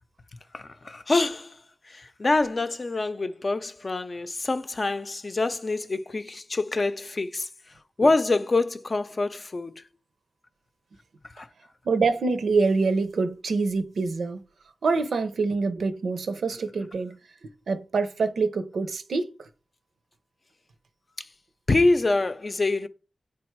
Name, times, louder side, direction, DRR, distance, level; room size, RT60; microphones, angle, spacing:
voice 1, 0.5-1.6 1.9-7.5 8.0-9.8 11.4-11.5 21.2-21.3 21.7-22.9, left 2 dB, 40° left, 0.6 m, -25 dB
voice 2, 11.8-14.4 14.8-19.5, right 4 dB, 85° right, 0.6 m, -26 dB
8.5 x 3.4 x 4.6 m
wide cardioid pair, 75°, 0 cm